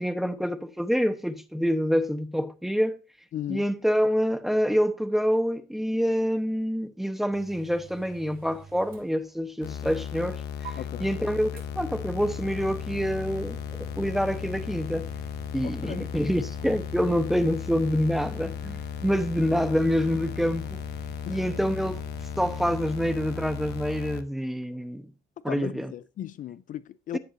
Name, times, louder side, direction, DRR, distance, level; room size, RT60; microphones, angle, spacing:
voice 1, 0.0-3.0 3.5-13.6 14.0-15.1 15.5-20.8 21.3-22.0 22.4-25.1 25.4-25.9 27.1-27.2, equal, ahead, 0.9 m, -27 dB
voice 2, 3.3-3.7 10.8-11.1 15.6-16.1 21.3-21.4 25.5-27.2, left 11 dB, 50° left, 0.5 m, -36 dB
sound 1, 7.3-9.6 9.9-10.0 10.6-10.7 11.6-23.9, right 5 dB, 60° right, 3.4 m, -47 dB
sound 2, 9.6-24.2, left 8 dB, 75° left, 1.0 m, -36 dB
11.0 x 9.5 x 2.6 m
cardioid pair, 110°, 17 cm